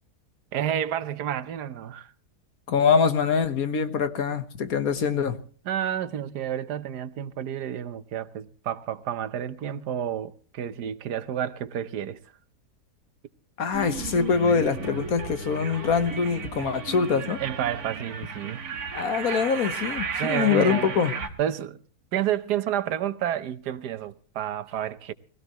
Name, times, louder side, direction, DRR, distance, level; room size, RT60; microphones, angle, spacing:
voice 1, 0.5-2.1 5.7-12.2 17.4-18.8 20.2-20.9 21.4-21.8 22.1-25.1, right 10 dB, 90° right, 1.4 m, -30 dB
voice 2, 2.7-5.4 13.6-17.4 18.9-21.1, left 6 dB, 65° left, 1.7 m, -24 dB
sound 1, 13.7-21.3, right 5 dB, 65° right, 2.1 m, -34 dB
21.5 x 17.0 x 3.0 m
omnidirectional pair, 1.7 m